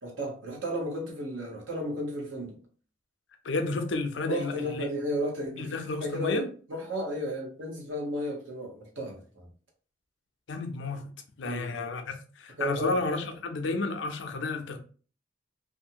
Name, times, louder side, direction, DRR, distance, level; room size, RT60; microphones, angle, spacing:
voice 1, 0.0-2.6 4.3-9.5 11.4-11.8 12.6-13.0, equal, 80° right, 1.1 m, -34 dB
voice 2, 3.4-4.9 5.6-6.5 10.5-11.0 11.4-14.8, left 3 dB, 70° left, 0.5 m, -31 dB
2.6 x 2.4 x 2.7 m
head